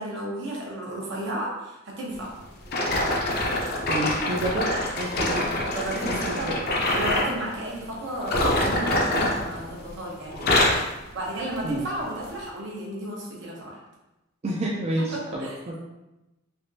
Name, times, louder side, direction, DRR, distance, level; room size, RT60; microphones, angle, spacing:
voice 1, 0.0-2.3 5.2-5.4 5.7-6.6 6.9-10.8 11.1-13.8 15.1-15.6, right 1 dB, 60° right, -3 dB, 0.8 m, -33 dB
sound 1, 2.7-7.4 8.2-10.0 10.3-10.9 11.5-11.7 12.4-12.5, left 1 dB, 50° left, 0.5 m, -25 dB
voice 2, 3.9-4.7 5.0-5.4 6.1-6.5 11.6-11.9 14.4-15.8, right 1 dB, 30° right, -4 dB, 0.3 m, -29 dB
3.3 x 2.5 x 2.6 m, 0.99 s
head